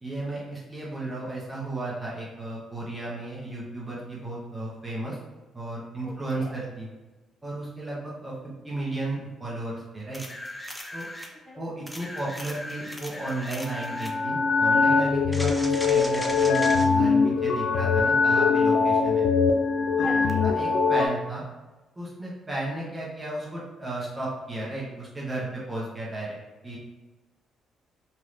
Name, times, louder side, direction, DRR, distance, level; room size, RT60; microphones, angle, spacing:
voice 1, 0.0-5.2 5.5-6.9 7.4-8.3 8.6-10.2 10.9-11.1 11.6-19.2 20.0-20.1 20.4-21.4 22.0-26.4 26.6-26.8, right 2 dB, 20° right, -6 dB, 0.9 m, -34 dB
voice 2, 6.0-6.5 11.3-11.6 15.1-15.4 20.0-20.4, equal, 45° left, -9 dB, 1.3 m, -40 dB
sound 1, 10.1-11.3 11.9-14.2 15.3-16.9 20.3-20.4, left 1 dB, 10° left, 0.4 m, -38 dB
sound 2, 13.7-21.1, left 4 dB, 80° left, 0.3 m, -22 dB
3.2 x 2.7 x 2.5 m, 1.2 s
cardioid pair, 90°, 0 cm